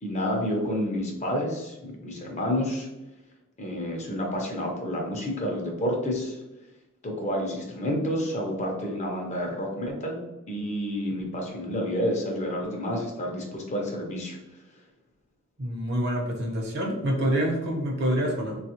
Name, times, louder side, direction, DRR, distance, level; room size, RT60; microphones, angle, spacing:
voice 1, 0.0-2.9 3.6-6.4 7.0-14.4, equal, 35° left, 1 dB, 0.6 m, -29 dB
voice 2, 15.6-18.6, right 1 dB, 50° right, 0 dB, 0.7 m, -27 dB
3.4 x 2.4 x 2.9 m, 0.99 s
head